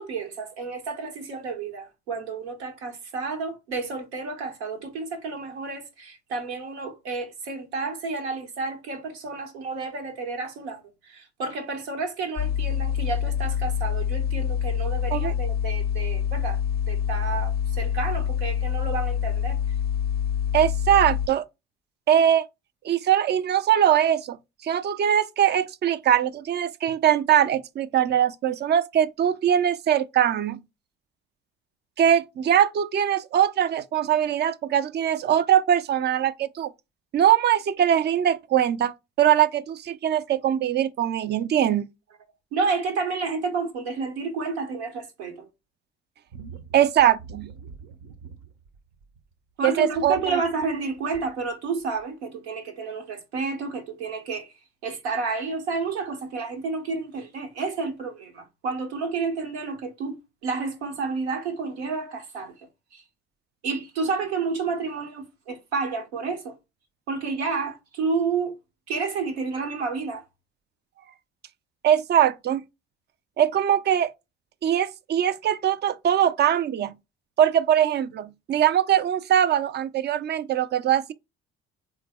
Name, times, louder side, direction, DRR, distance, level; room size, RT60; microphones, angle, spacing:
voice 1, 0.0-16.6 16.9-19.6 42.5-45.5 49.6-54.5 54.8-60.2 60.4-62.5 62.9-63.0 63.6-66.6 67.1-68.5 68.9-70.2, right 4 dB, 85° right, 0.9 m, -30 dB
sound 1, 12.4-21.3, left 9 dB, 30° left, 0.5 m, -26 dB
voice 2, 20.5-21.4 22.1-22.5 22.8-24.4 24.6-30.6 32.0-36.7 37.1-38.9 39.2-41.8 46.7-47.5 49.6-50.4 71.8-72.6 73.4-74.1 74.6-76.9 77.4-81.1, right 10 dB, 35° right, 0.4 m, -21 dB
sound 2, 46.3-49.3 49.8-51.5 52.0-52.1, right 6 dB, 65° right, 0.8 m, -44 dB
3.9 x 2.1 x 3.4 m
hypercardioid pair, 60°, 32 cm